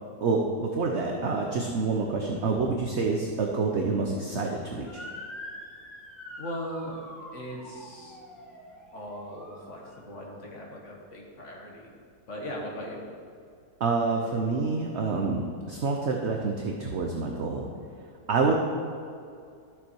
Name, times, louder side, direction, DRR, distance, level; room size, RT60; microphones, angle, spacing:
voice 1, 0.2-5.0 13.8-15.4 15.7-17.7 18.3-18.5, right 4 dB, 50° right, 1 dB, 0.9 m, -27 dB
Motor vehicle (road) / Siren, 4.9-10.1, left 1 dB, ahead, 1.4 m, -45 dB
voice 2, 6.4-7.0 7.3-8.2 8.9-11.9 12.3-13.0, equal, 45° left, -1 dB, 1.8 m, -39 dB
12.5 x 7.2 x 4.6 m, 2.4 s
omnidirectional pair, 1.9 m